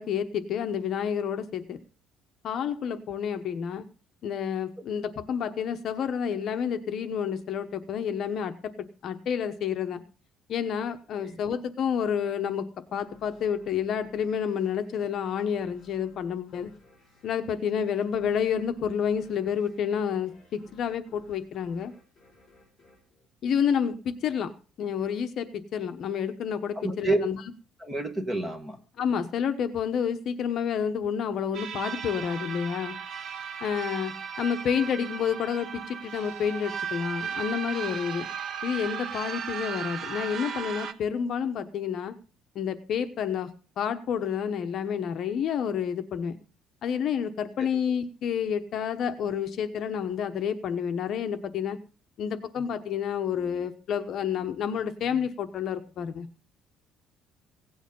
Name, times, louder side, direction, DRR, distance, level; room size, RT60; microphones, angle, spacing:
voice 1, 0.0-1.8 2.4-3.8 4.2-10.0 10.5-16.7 17.2-21.9 23.4-24.5 24.8-27.4 29.0-33.0 33.6-38.3 38.6-42.1 42.5-43.5 43.8-46.4 46.8-51.8 52.2-56.3, left 7 dB, 40° left, 8 dB, 1.0 m, -29 dB
sound 1, 13.0-24.2, left 3 dB, 20° left, 6.5 m, -59 dB
voice 2, 26.7-27.2 27.8-28.8 47.6-47.7, right 1 dB, 10° right, 6 dB, 1.4 m, -28 dB
R-riser max, 31.5-40.9, right 7 dB, 50° right, 1.1 m, -36 dB
16.5 x 9.2 x 5.4 m, 0.36 s
cardioid pair, 180°, 0 cm